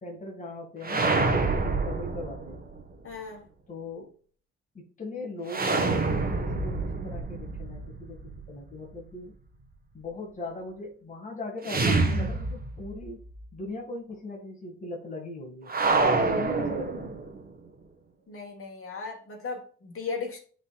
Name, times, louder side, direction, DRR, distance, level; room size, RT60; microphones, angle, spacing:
voice 1, 0.0-2.6 3.7-4.2 4.7-9.3 9.9-13.2 13.5-15.7 16.2-17.1, left 2 dB, 25° left, 1.9 m, -39 dB
sound 1, 0.8-2.8 5.5-8.5 11.6-13.0 13.3-13.4 15.7-17.4, right 3 dB, 30° right, 1.4 m, -27 dB
voice 2, 3.0-3.5 18.3-20.4, left 4 dB, 45° left, 2.3 m, -36 dB
9.7 x 4.0 x 2.4 m
cardioid pair, 90°, 30 cm